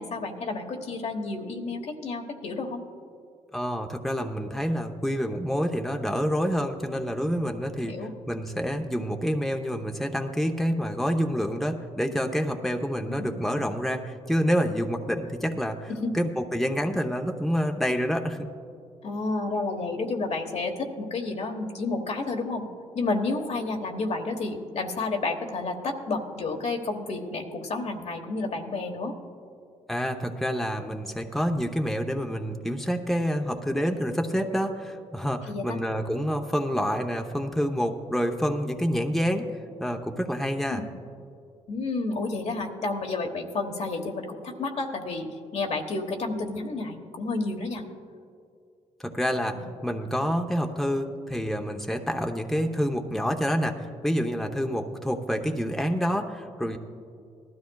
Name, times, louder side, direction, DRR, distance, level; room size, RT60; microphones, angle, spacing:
voice 1, 0.0-2.9 7.8-8.1 13.1-13.4 15.9-16.2 19.0-22.7 22.9-29.2 35.5-35.8 40.7-40.9 41.7-47.8 49.5-49.7, left 3 dB, 60° left, 3 dB, 1.3 m, -31 dB
voice 2, 3.5-18.5 29.9-39.5 39.8-40.8 49.0-56.8, equal, ahead, 3 dB, 0.8 m, -28 dB
18.5 x 13.0 x 2.3 m, 2.4 s
cardioid pair, 65°, 12 cm